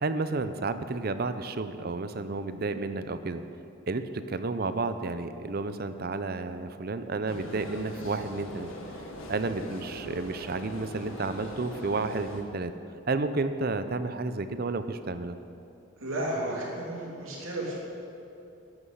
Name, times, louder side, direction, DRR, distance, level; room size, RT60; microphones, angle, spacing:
voice 1, 0.0-3.4 3.9-8.7 9.3-12.7 13.1-15.4, right 3 dB, 50° right, 11 dB, 0.6 m, -31 dB
sound 1, 7.3-12.4, left 1 dB, 90° left, 1.7 m, -41 dB
voice 2, 16.0-17.8, right 1 dB, 85° right, -3 dB, 3.2 m, -33 dB
13.0 x 11.0 x 5.7 m, 2.7 s
head